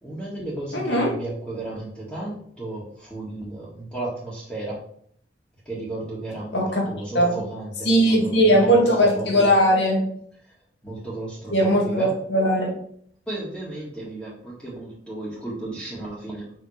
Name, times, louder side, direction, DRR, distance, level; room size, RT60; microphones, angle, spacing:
voice 1, 0.0-4.8 5.6-8.8 9.1-9.6 10.8-12.1 13.3-16.5, right 2 dB, 5° left, -8 dB, 1.7 m, -34 dB
voice 2, 0.7-1.1 6.5-6.9 7.1-7.4 7.9-10.1 11.5-12.7, equal, 70° left, -1 dB, 2.0 m, -19 dB
5.6 x 4.9 x 4.2 m, 0.63 s
head